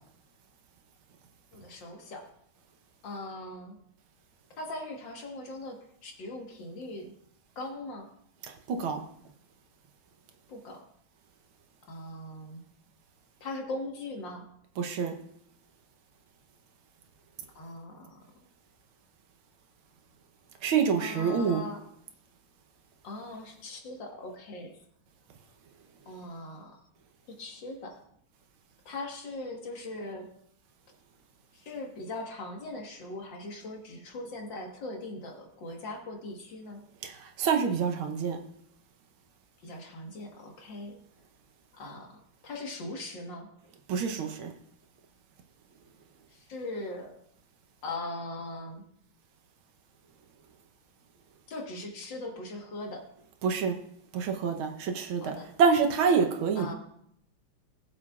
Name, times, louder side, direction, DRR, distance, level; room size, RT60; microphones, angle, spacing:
voice 1, 1.5-2.3 3.0-3.8 4.6-7.1 7.6-8.1 10.5-10.9 11.9-12.6 13.4-14.5 17.6-18.2 21.0-21.8 23.0-24.8 26.1-26.8 27.3-28.0 28.9-30.3 31.5-36.8 39.6-41.0 41.7-42.1 42.4-43.5 46.3-47.2 47.8-48.8 51.5-53.1 55.2-55.5 56.6-56.7, left 2 dB, 60° left, 2 dB, 2.1 m, -40 dB
voice 2, 8.7-9.0 14.8-15.1 20.6-21.6 37.0-38.4 43.9-44.5 53.4-53.8 54.1-56.7, right 6 dB, 80° right, 5 dB, 1.8 m, -27 dB
19.0 x 7.4 x 2.4 m, 0.71 s
omnidirectional pair, 2.3 m